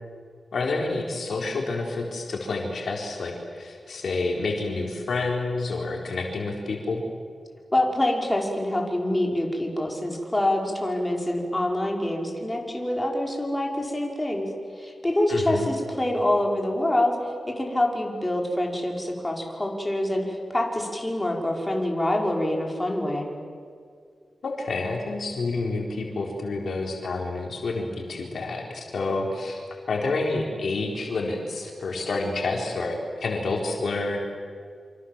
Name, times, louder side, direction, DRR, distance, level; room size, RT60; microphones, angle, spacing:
voice 1, 0.5-7.0 15.3-15.7 24.4-34.2, left 3 dB, 75° left, 0 dB, 4.2 m, -29 dB
voice 2, 7.7-14.5 14.8-17.2 17.5-23.3, left 1 dB, 15° left, 0 dB, 5.2 m, -26 dB
28.0 x 26.0 x 7.5 m, 2.2 s
cardioid pair, 70°, 0 cm